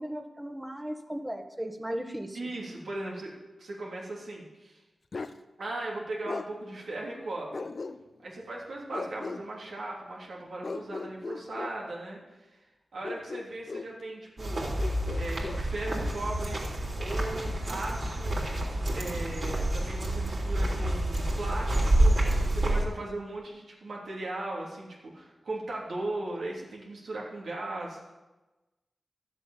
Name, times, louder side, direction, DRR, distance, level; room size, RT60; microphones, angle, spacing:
voice 1, 0.0-2.4, equal, 15° right, 5 dB, 1.5 m, -36 dB
voice 2, 2.3-3.3 3.6-4.8 5.6-7.7 8.2-12.5 12.9-14.7 15.1-16.6 16.9-18.4 18.9-24.9 25.1-28.1, right 2 dB, 80° right, -3 dB, 3.3 m, -37 dB
Bark, 5.1-5.4 6.3-6.5 7.5-8.3 8.9-9.4 10.6-11.8 13.0-13.9 14.8-15.6, left 3 dB, 60° left, 0.7 m, -37 dB
sound 1, 14.4-22.8, right 1 dB, 60° right, 3.8 m, -28 dB
12.5 x 7.8 x 7.3 m, 1.1 s
cardioid pair, 55°, 0 cm